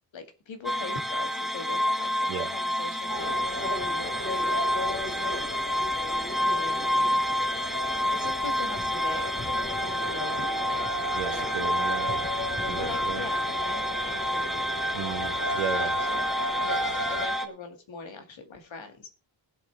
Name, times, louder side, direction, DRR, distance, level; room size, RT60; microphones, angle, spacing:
voice 1, 0.1-5.4 6.4-7.0 8.1-9.4 9.8-10.9 11.3-11.6 12.8-14.6 15.7-16.2 16.6-19.1, left 4 dB, 65° left, 2.2 m, -41 dB
sound 1, 0.6-17.5, equal, ahead, 1.0 m, -29 dB
sound 2, 3.1-17.3, left 1 dB, 25° left, 4.9 m, -35 dB
voice 2, 11.1-12.2 12.6-13.2 14.9-15.9, right 7 dB, 90° right, 1.4 m, -34 dB
20.0 x 8.0 x 3.4 m
wide cardioid pair, 155°, 49 cm